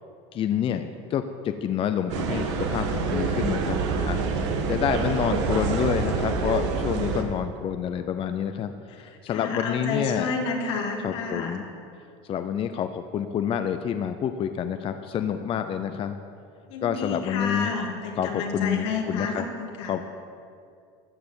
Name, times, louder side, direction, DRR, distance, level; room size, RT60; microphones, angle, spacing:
voice 1, 0.3-3.8 4.1-4.2 4.7-10.3 11.0-11.7 12.2-16.2 16.8-17.8 18.2-19.4 19.9-20.1, left 9 dB, 40° left, 8 dB, 0.6 m, -28 dB
sound 1, 2.1-7.2, right 4 dB, 85° right, 1.4 m, -26 dB
voice 2, 9.0-11.6 16.7-20.1, left 4 dB, 85° left, 1 dB, 2.3 m, -30 dB
13.5 x 6.8 x 7.9 m, 2.3 s
supercardioid pair, 115°, 15 cm